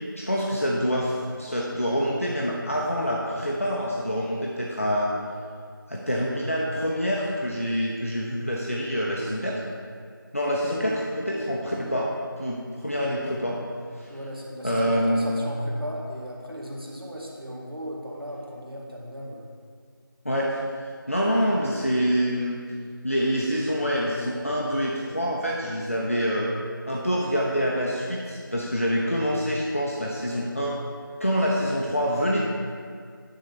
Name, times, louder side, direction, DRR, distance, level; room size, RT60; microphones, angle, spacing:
voice 1, 0.2-5.1 5.9-9.6 10.3-12.1 12.4-13.6 14.0-14.1 14.6-15.4 20.2-20.6 21.1-22.6 23.0-26.5 26.9-30.8 31.2-32.4, equal, 40° left, -3 dB, 0.8 m, -26 dB
voice 2, 14.1-19.4, equal, 80° right, -2 dB, 2.1 m, -37 dB
10.0 x 3.9 x 7.0 m, 2.1 s
figure-of-eight pair, 175°, 12 cm